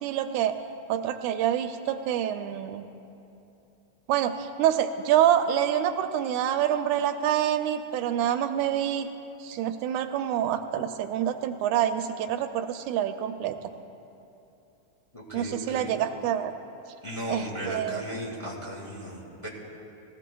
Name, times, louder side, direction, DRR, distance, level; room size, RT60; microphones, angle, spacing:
voice 1, 0.0-0.6 0.9-2.9 4.1-9.1 9.4-13.6 15.3-16.5 17.3-18.0, right 10 dB, 85° right, 8 dB, 1.9 m, -26 dB
voice 2, 15.1-15.9 17.0-19.5, equal, 15° left, -4 dB, 1.9 m, -36 dB
21.0 x 15.5 x 2.3 m, 2.8 s
omnidirectional pair, 3.4 m